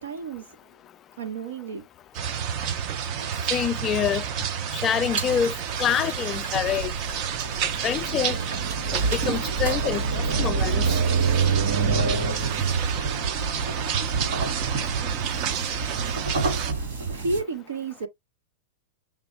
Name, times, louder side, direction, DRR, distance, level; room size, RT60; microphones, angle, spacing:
voice 1, 0.0-0.4 1.2-1.8 17.1-18.1, right 3 dB, 90° right, 1.4 m, -31 dB
sound 1, 2.1-16.7, right 8 dB, 40° right, 0.6 m, -30 dB
voice 2, 3.5-4.2 4.7-5.5 5.8-6.9 7.8-8.4 8.9-10.8, left 9 dB, 25° left, 0.3 m, -26 dB
sound 2, 5.0-17.4, right 4 dB, 65° right, 2.9 m, -27 dB
5.9 x 2.2 x 3.3 m
hypercardioid pair, 140°, 0 cm